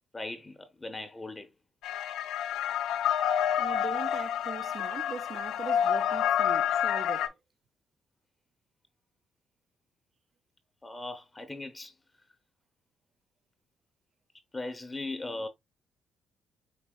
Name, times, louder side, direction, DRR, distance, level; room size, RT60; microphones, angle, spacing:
voice 1, 0.1-1.5 10.8-11.9 14.5-15.5, left 2 dB, 15° left, 0.7 m, -38 dB
sound 1, 1.8-7.3, left 9 dB, 80° left, 0.4 m, -28 dB
voice 2, 3.6-7.3, right 6 dB, 45° right, 0.4 m, -41 dB
4.7 x 3.9 x 2.3 m
cardioid pair, 90°, 0 cm